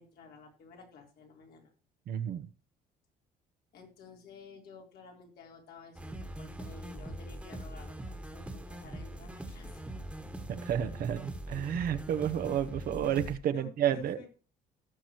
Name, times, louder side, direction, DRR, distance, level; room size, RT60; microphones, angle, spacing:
voice 1, 0.0-1.7 3.7-9.8 13.5-14.3, left 4 dB, 65° left, 3.7 m, -52 dB
voice 2, 2.1-2.5 10.5-14.2, right 9 dB, 60° right, 1.0 m, -31 dB
sound 1, 5.9-13.4, right 1 dB, 5° right, 1.6 m, -42 dB
18.0 x 6.0 x 3.0 m
cardioid pair, 110°, 17 cm